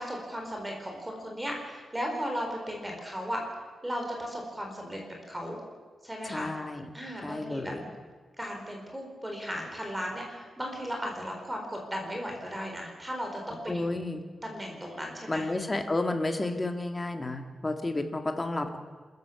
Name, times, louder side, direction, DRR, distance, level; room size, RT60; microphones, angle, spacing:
voice 1, 0.0-3.4 3.8-5.0 5.3-5.6 6.0-6.5 6.9-7.7 8.4-14.0 14.4-15.5, equal, 10° right, 1 dB, 4.6 m, -36 dB
voice 2, 6.3-6.9 7.2-7.8 13.7-14.2 15.3-18.8, left 2 dB, 20° left, 5 dB, 1.9 m, -31 dB
27.0 x 14.5 x 7.1 m, 1.5 s
wide cardioid pair, 140°, 0 cm